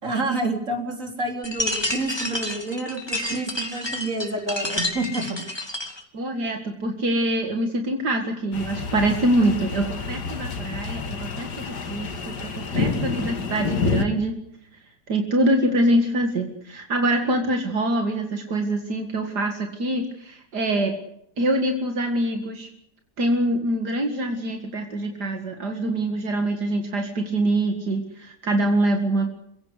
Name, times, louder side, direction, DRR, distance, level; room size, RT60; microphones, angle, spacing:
voice 1, 0.0-5.4, right 2 dB, 50° right, 4 dB, 4.2 m, -28 dB
sound 1, 1.4-6.0, left 1 dB, 15° left, 3.2 m, -29 dB
voice 2, 6.1-14.4 15.1-20.9 21.4-22.7 23.2-29.3, right 1 dB, 75° right, 4 dB, 2.7 m, -24 dB
sound 2, 8.5-14.0, left 4 dB, 75° left, 2.5 m, -28 dB
28.0 x 17.0 x 8.3 m, 0.78 s
omnidirectional pair, 1.8 m